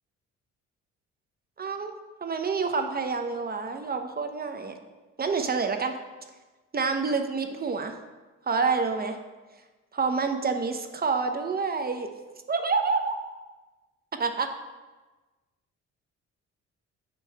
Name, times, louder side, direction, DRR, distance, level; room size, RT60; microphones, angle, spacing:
voice 1, 1.6-1.9 2.2-4.7 5.2-5.9 6.7-7.9 8.5-9.2 9.9-12.1 12.5-13.2 14.2-14.5, right 4 dB, 30° right, 6 dB, 0.9 m, -27 dB
8.5 x 3.1 x 6.4 m, 1.2 s
cardioid pair, 90°, 30 cm